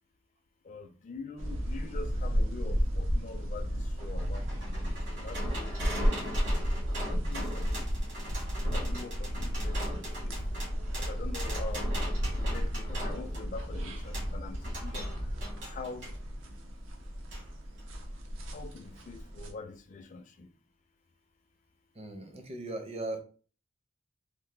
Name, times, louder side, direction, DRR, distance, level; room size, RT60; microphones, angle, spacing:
voice 1, 0.6-5.7 7.1-7.9 8.7-10.4 11.0-11.9 12.3-15.1 15.7-16.1 18.5-20.5, left 3 dB, 40° left, 0.4 m, -44 dB
sound 1, 1.4-19.5, equal, 80° right, 0.7 m, -33 dB
sound 2, 3.7-16.2 17.3-17.4 17.8-17.9, equal, 65° right, 1.7 m, -41 dB
voice 2, 22.0-23.2, right 2 dB, 30° right, 0.6 m, -38 dB
3.2 x 2.1 x 3.2 m
head